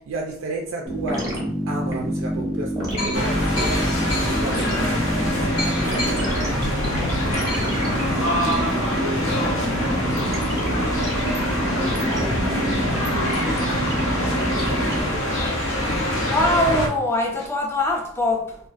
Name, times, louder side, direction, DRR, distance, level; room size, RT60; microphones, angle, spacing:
voice 1, 0.1-1.4 1.7-11.2 11.8-13.3 14.2-15.6, right 3 dB, 80° right, 0.3 m, -35 dB
sound 1, 0.8-15.0, equal, 15° right, 0.7 m, -27 dB
sound 2, 2.2-2.3 3.0-12.1 12.5-12.6 12.8-17.5, left 2 dB, 60° left, 0.8 m, -38 dB
sound 3, 3.1-16.9, left 1 dB, 85° left, 0.5 m, -24 dB
voice 2, 16.3-18.6, left 2 dB, 10° left, 0.3 m, -22 dB
2.4 x 2.2 x 2.4 m
head